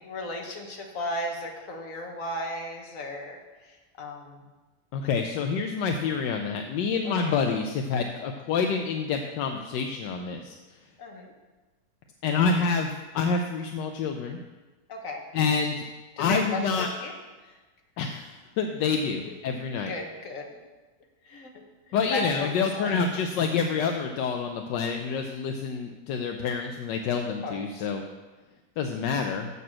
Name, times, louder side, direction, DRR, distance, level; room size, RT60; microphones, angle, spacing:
voice 1, 0.0-4.4 7.2-7.3 11.0-11.3 14.9-15.2 16.2-17.1 17.4-17.6 19.9-20.5 21.2-21.5 21.9-23.0 27.4-27.6, left 1 dB, 50° left, 2 dB, 1.6 m, -35 dB
voice 2, 4.9-10.6 12.2-14.4 15.3-15.8 16.2-16.9 18.0-19.9 21.9-28.0 28.8-29.5, left 5 dB, 85° left, 4 dB, 1.3 m, -27 dB
6.8 x 6.8 x 7.4 m, 1.2 s
omnidirectional pair, 1.9 m